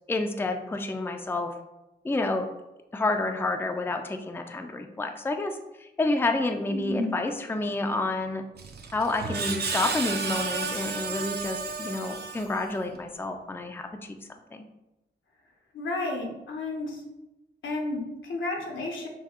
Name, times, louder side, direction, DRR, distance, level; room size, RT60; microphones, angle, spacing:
voice 1, 0.1-1.5 2.0-2.5 2.9-8.4 8.9-14.2 14.5-14.6, left 2 dB, 10° left, 5 dB, 0.4 m, -29 dB
voice 2, 6.7-7.1 15.7-17.0 17.6-19.1, left 2 dB, 85° left, 0 dB, 0.9 m, -32 dB
Screech, 8.6-12.9, right 4 dB, 55° right, 0.5 m, -32 dB
5.8 x 2.3 x 2.9 m, 0.97 s
cardioid pair, 70°, 19 cm